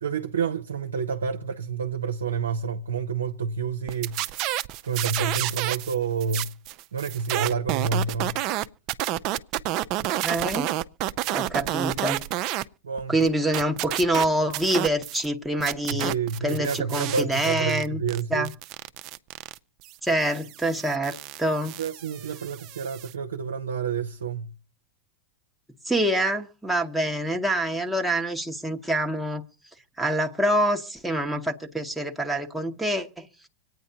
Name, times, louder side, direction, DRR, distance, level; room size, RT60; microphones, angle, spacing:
voice 1, 0.0-4.2 4.8-6.5 6.9-8.4 11.6-11.7 12.8-13.2 15.9-18.5 21.8-24.5, right 5 dB, 80° right, 0.7 m, -29 dB
sound 1, 3.9-5.9 6.2-12.6 13.0-15.3 15.6-23.1, right 15 dB, 50° right, 0.5 m, -30 dB
voice 2, 10.2-10.7 11.3-12.2 13.1-16.1 16.4-18.0 18.3-18.5 20.0-21.8 25.8-29.4 30.0-33.3, right 1 dB, 5° right, 1.0 m, -26 dB
26.0 x 9.3 x 2.8 m
hypercardioid pair, 95°, 0 cm